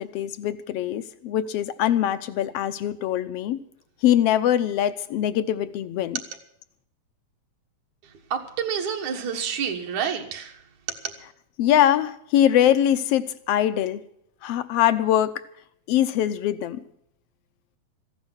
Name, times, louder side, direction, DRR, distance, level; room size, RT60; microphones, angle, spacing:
voice 1, 0.0-3.6 4.0-6.2 11.6-14.0 14.4-15.4 15.9-16.8, left 11 dB, 70° left, 13 dB, 1.6 m, -22 dB
voice 2, 8.0-11.2, right 7 dB, 75° right, 3 dB, 2.9 m, -29 dB
15.0 x 10.5 x 8.0 m, 0.69 s
omnidirectional pair, 3.4 m